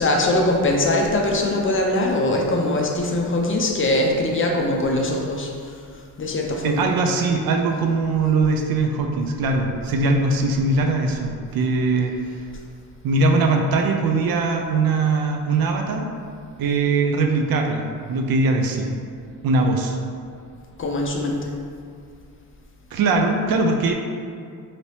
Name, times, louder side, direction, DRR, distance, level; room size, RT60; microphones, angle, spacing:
voice 1, 0.0-5.8 6.2-6.9 20.8-21.4, left 1 dB, 35° left, 0 dB, 0.4 m, -22 dB
voice 2, 6.6-12.1 13.0-16.1 16.6-18.9 19.4-20.0 22.9-23.9, right 3 dB, 65° right, 3 dB, 0.5 m, -21 dB
2.8 x 2.7 x 3.2 m, 2.2 s
cardioid pair, 95°, 38 cm